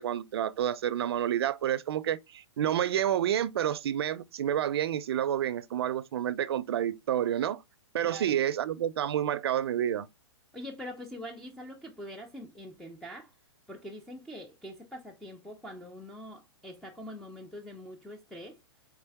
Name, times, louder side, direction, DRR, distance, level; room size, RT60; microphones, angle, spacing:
voice 1, 0.0-7.6 7.9-10.1, right 10 dB, 60° right, 0.5 m, -29 dB
voice 2, 8.0-8.4 10.5-13.3 13.7-18.6, equal, ahead, 0.6 m, -44 dB
4.4 x 3.5 x 3.4 m
hypercardioid pair, 145°, 14 cm